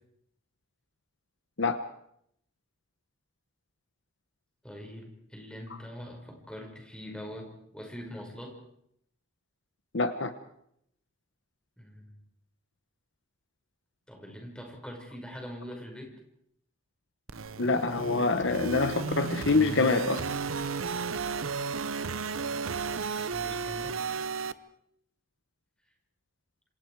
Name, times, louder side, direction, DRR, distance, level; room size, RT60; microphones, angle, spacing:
voice 1, 4.6-8.6 11.8-12.1 14.1-16.1 22.2-24.0, equal, 5° left, 1 dB, 5.3 m, -43 dB
voice 2, 9.9-10.3 17.6-20.3, left 3 dB, 55° left, 9 dB, 1.1 m, -26 dB
sound 1, 17.3-24.5, right 5 dB, 70° right, 0.9 m, -33 dB
27.0 x 26.5 x 4.8 m, 0.73 s
head